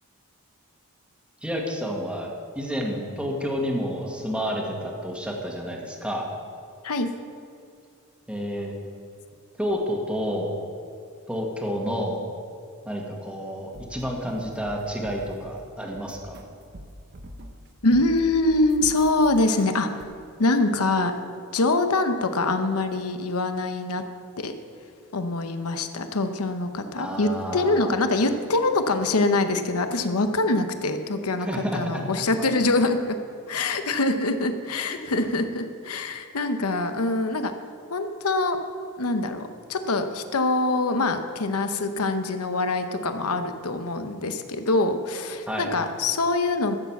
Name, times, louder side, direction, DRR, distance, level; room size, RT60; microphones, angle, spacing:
voice 1, 1.4-6.3 8.3-8.7 9.6-10.6 11.3-12.2 12.8-16.3 27.0-28.0 31.4-32.0 34.9-35.1 45.5-45.7, equal, 5° right, -1 dB, 1.6 m, -30 dB
sound 1, 13.5-15.5 16.0-17.7 17.9-20.1, equal, 50° right, 0.9 m, -44 dB
voice 2, 17.8-19.9 20.4-21.2 21.5-24.0 24.4-24.5 25.1-31.5 31.7-33.2 33.5-37.5 37.9-38.6 39.0-46.8, left 2 dB, 80° left, 7 dB, 0.9 m, -24 dB
14.0 x 7.2 x 7.2 m, 2.4 s
head